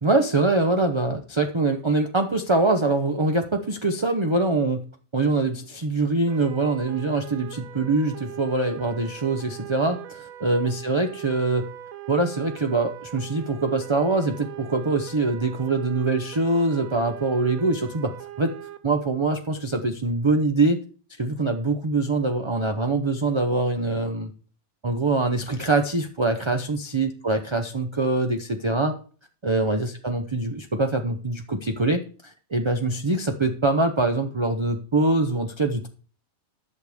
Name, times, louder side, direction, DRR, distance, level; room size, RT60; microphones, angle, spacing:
voice 1, 0.0-4.8 5.1-11.7 12.1-18.5 18.8-20.8 21.2-24.3 24.8-29.0 29.4-35.9, right 2 dB, 25° right, 5 dB, 0.7 m, -24 dB
sound 1, 6.3-18.8, right 10 dB, 80° right, 1.3 m, -41 dB
11.0 x 6.6 x 5.0 m, 0.40 s
omnidirectional pair, 1.5 m